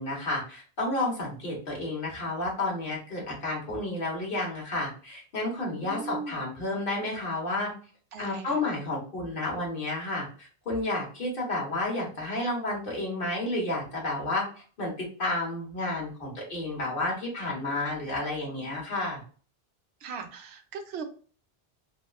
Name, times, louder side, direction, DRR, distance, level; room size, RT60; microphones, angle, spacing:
voice 1, 0.0-7.7 8.2-14.4 14.8-19.2, left 2 dB, 60° left, -2 dB, 1.3 m, -31 dB
voice 2, 5.7-6.4 8.1-8.5 20.0-21.0, right 4 dB, 85° right, 5 dB, 0.9 m, -39 dB
3.5 x 2.1 x 2.3 m, 0.40 s
omnidirectional pair, 1.0 m